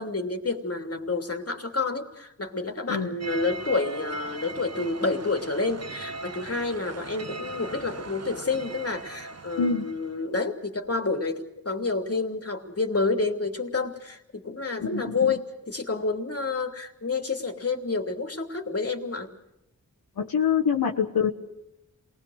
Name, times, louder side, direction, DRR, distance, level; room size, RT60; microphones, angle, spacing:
voice 1, 0.0-19.3, left 3 dB, 40° left, 3 dB, 3.1 m, -29 dB
sound 1, 3.2-10.3, right 3 dB, 45° right, 1.2 m, -39 dB
voice 2, 14.8-15.3 20.2-21.3, left 6 dB, 85° left, 1 dB, 1.4 m, -25 dB
28.0 x 20.0 x 6.5 m, 0.87 s
cardioid pair, 45°, 35 cm